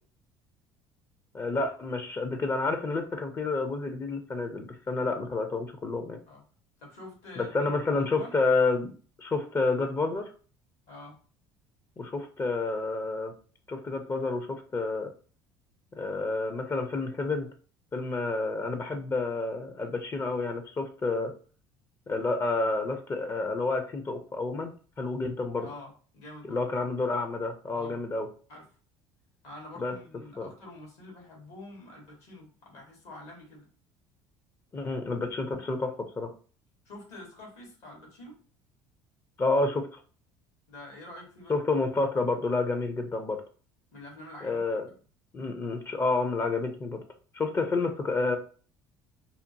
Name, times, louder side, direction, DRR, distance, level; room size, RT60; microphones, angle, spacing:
voice 1, 1.3-6.2 7.4-8.9 9.2-10.3 12.0-13.3 13.7-15.1 16.0-17.5 17.9-21.3 22.1-25.7 26.5-28.3 29.8-29.9 30.4-30.5 34.7-36.3 39.4-40.0 41.5-43.4 44.4-44.8 45.3-47.0 47.3-48.4, left 3 dB, 25° left, 6 dB, 0.5 m, -29 dB
voice 2, 6.8-8.4 10.9-11.2 25.6-26.7 27.7-28.0 28.5-28.7 29.4-33.7 36.8-38.4 40.7-41.6 43.9-44.8, left 2 dB, 70° left, 0 dB, 1.4 m, -47 dB
2.8 x 2.0 x 2.7 m, 0.41 s
hypercardioid pair, 75°, 11 cm